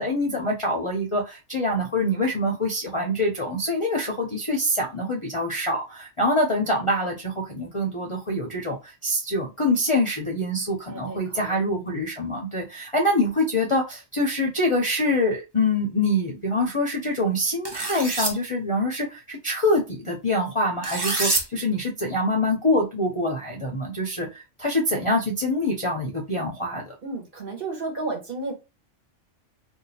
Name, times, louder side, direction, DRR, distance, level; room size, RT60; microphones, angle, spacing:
voice 1, 0.0-26.9, left 1 dB, 35° left, 0.5 m, -25 dB
voice 2, 10.9-12.0 27.0-28.5, right 3 dB, 50° right, 1.3 m, -33 dB
sound 1, 17.6-18.3 20.8-21.4, right 2 dB, 30° right, 0.5 m, -26 dB
2.7 x 2.3 x 4.0 m
omnidirectional pair, 1.2 m